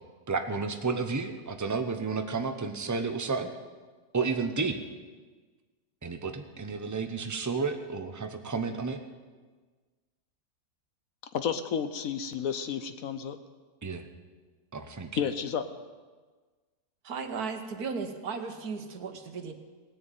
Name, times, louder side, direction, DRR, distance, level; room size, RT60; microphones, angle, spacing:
voice 1, 0.3-3.5 4.1-4.8 6.0-9.0 13.8-14.0 14.7-15.1, right 4 dB, 15° right, 7 dB, 0.7 m, -31 dB
voice 2, 11.3-13.4 15.2-15.6, left 7 dB, 65° left, 10 dB, 1.1 m, -31 dB
voice 3, 17.0-19.5, right 5 dB, 70° right, 7 dB, 1.6 m, -35 dB
18.5 x 6.9 x 9.1 m, 1.4 s
omnidirectional pair, 1.7 m